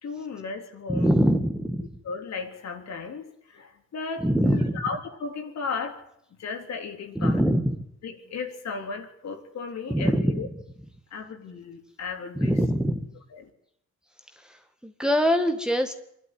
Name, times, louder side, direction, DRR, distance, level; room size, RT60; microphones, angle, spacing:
voice 1, 0.0-1.1 2.0-6.0 6.4-7.4 8.0-10.5 11.1-12.6 13.3-13.5, left 4 dB, 60° left, 3.6 m, -35 dB
voice 2, 0.9-1.9 4.2-4.8 7.2-7.8 9.9-10.4 12.3-13.1 14.4-15.9, equal, 5° right, 2.0 m, -23 dB
25.5 x 12.0 x 9.4 m
cardioid pair, 90°, 30 cm